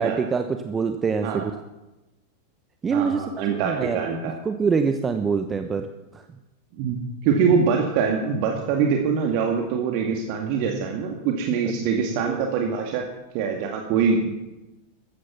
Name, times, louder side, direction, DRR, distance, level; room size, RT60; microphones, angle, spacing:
voice 1, 0.0-1.5 2.8-4.0 4.4-5.9 6.1-6.2 12.2-12.7, right 5 dB, 20° right, 7 dB, 1.0 m, -25 dB
voice 2, 2.9-4.3 6.8-7.0 7.2-13.0 13.3-14.3, right 6 dB, 45° right, 2 dB, 2.1 m, -24 dB
15.0 x 14.5 x 5.9 m, 1.0 s
figure-of-eight pair, 90°, 0 cm